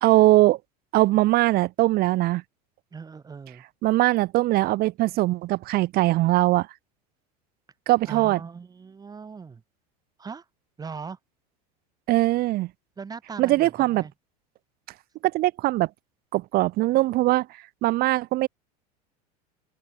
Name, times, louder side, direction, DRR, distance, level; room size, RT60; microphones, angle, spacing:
voice 1, 0.0-0.6 0.9-2.4 3.8-6.7 7.9-8.4 12.1-12.7 13.4-14.1 15.2-15.9 16.3-17.5 17.8-18.5, right 18 dB, 50° right, 0.9 m, -21 dB
voice 2, 2.9-3.6 8.1-9.6 10.2-10.4 10.8-11.2 13.0-14.1, right 5 dB, 20° right, 1.1 m, -39 dB
open air
hypercardioid pair, 95°, 21 cm